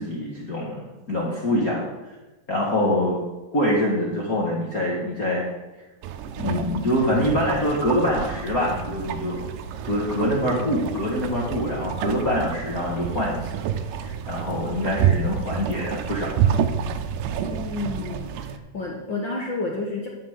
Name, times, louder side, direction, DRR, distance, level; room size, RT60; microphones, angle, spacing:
voice 1, 0.0-1.8 2.5-3.2 3.5-5.5 6.4-9.4 9.8-13.6 14.0-16.6, left 1 dB, 35° left, -4 dB, 1.5 m, -25 dB
sound 1, 6.0-18.6, right 8 dB, 80° right, 2.3 m, -28 dB
voice 2, 17.4-20.1, left 3 dB, 65° left, -1 dB, 1.2 m, -30 dB
11.5 x 5.1 x 8.0 m, 1.1 s
omnidirectional pair, 3.9 m